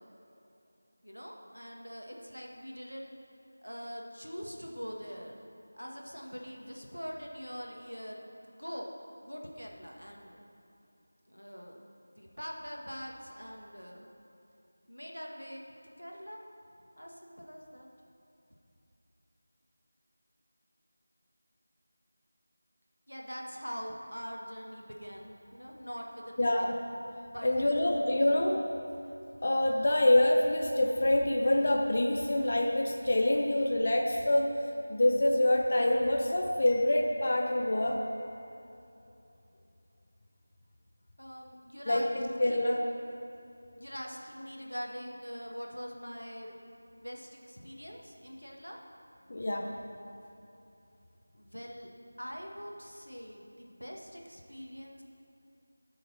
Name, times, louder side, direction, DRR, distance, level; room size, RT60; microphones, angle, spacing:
voice 1, 1.0-3.1 3.6-5.4 5.7-8.2 8.5-8.9 9.2-10.4 11.3-11.8 12.2-14.0 14.9-16.4 17.0-17.9 23.1-26.7 27.3-27.6 27.9-28.3 41.2-42.1 42.4-42.6 43.7-46.5 47.0-48.8 51.3-51.9 52.2-55.0, equal, 90° left, 0 dB, 1.7 m, -43 dB
voice 2, 26.4-26.7 27.4-28.6 29.4-34.6 34.9-38.0 41.9-42.8 49.3-49.7, left 1 dB, 40° left, 0 dB, 0.8 m, -26 dB
16.5 x 6.5 x 4.3 m, 2.8 s
figure-of-eight pair, 170°, 0 cm